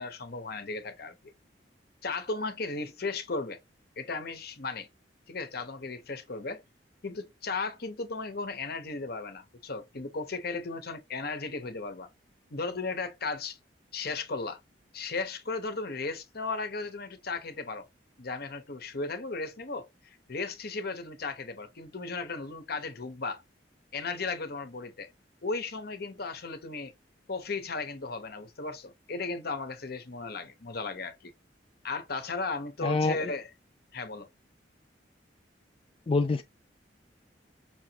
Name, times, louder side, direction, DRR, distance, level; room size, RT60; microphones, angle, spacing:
voice 1, 0.0-1.3 2.0-3.6 4.0-4.9 5.3-6.6 7.0-12.1 12.5-13.6 13.9-14.6 14.9-17.9 18.2-23.4 23.9-25.1 25.4-26.9 27.3-31.3 31.8-33.5 33.9-34.3, left 3 dB, 60° left, 1.0 m, -35 dB
voice 2, 32.8-33.3 36.1-36.4, left 3 dB, 30° left, 0.3 m, -26 dB
6.0 x 3.0 x 2.9 m
head